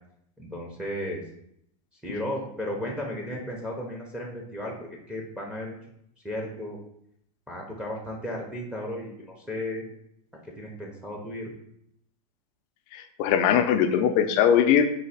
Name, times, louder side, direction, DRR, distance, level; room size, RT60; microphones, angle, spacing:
voice 1, 0.4-1.2 2.0-5.8 6.2-6.8 7.5-9.8 10.6-11.5, left 1 dB, 5° right, -2 dB, 0.7 m, -34 dB
voice 2, 12.9-14.9, left 8 dB, 45° left, 8 dB, 0.5 m, -21 dB
4.0 x 2.8 x 4.1 m, 0.73 s
supercardioid pair, 130°, 19 cm